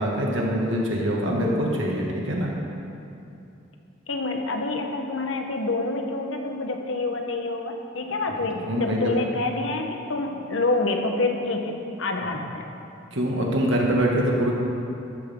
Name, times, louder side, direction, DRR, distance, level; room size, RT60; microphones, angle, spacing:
voice 1, 0.0-2.5 8.6-9.1 13.1-14.5, equal, 60° right, -2 dB, 2.1 m, -24 dB
voice 2, 4.1-12.6, left 2 dB, 65° left, 3 dB, 1.1 m, -27 dB
13.5 x 13.0 x 3.8 m, 2.7 s
head